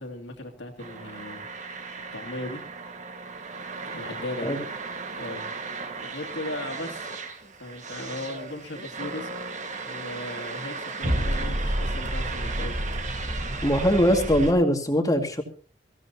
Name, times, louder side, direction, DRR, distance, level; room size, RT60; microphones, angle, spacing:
voice 1, 0.0-1.5 2.1-2.7 3.9-4.6 5.2-5.5 6.0-7.1 7.6-9.3 9.8-12.8, left 1 dB, 75° left, 5 dB, 2.7 m, -37 dB
sound 1, 0.8-14.5, right 2 dB, 40° right, 1.7 m, -33 dB
voice 2, 13.6-15.4, equal, 20° left, 5 dB, 2.1 m, -21 dB
22.5 x 15.5 x 2.8 m, 0.38 s
head